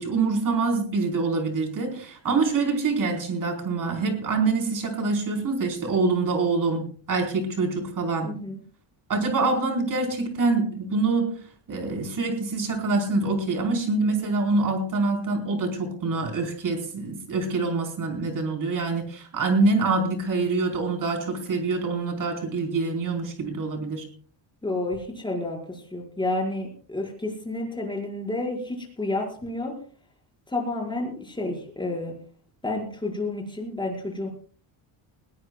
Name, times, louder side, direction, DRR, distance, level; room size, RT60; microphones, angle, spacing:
voice 1, 0.0-8.3 9.1-11.4 11.7-24.1, right 3 dB, 40° right, 3 dB, 4.6 m, -25 dB
voice 2, 8.2-8.6 24.6-29.7 30.5-32.1 32.6-34.3, left 2 dB, 10° left, 0 dB, 5.1 m, -30 dB
21.0 x 17.5 x 2.3 m, 0.43 s
cardioid pair, 135°, 49 cm